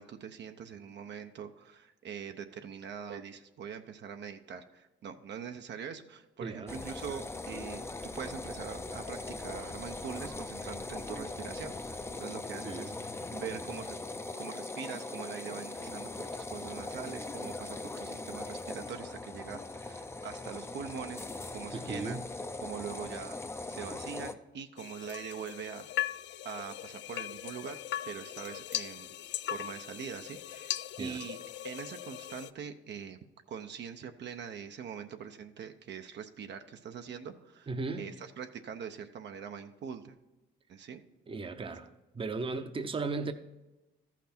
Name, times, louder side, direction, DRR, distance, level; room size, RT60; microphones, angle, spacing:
voice 1, 0.0-14.0 14.4-16.1 16.4-21.3 21.5-22.2 22.6-23.4 23.7-25.9 26.4-27.8 28.1-29.1 29.5-31.4 31.6-33.2 33.5-37.7 38.0-40.2 40.7-41.0, right 7 dB, 65° right, 7 dB, 0.7 m, -43 dB
voice 2, 6.4-6.7 12.5-12.9 21.7-22.2 31.0-31.2 37.7-38.1 41.3-43.3, right 3 dB, 25° right, 9 dB, 0.7 m, -36 dB
sound 1, 6.7-24.3, left 2 dB, 15° left, 0.5 m, -40 dB
sound 2, 24.8-32.5, left 13 dB, 65° left, 0.4 m, -39 dB
13.5 x 5.9 x 4.3 m, 1.0 s
cardioid pair, 90°, 20 cm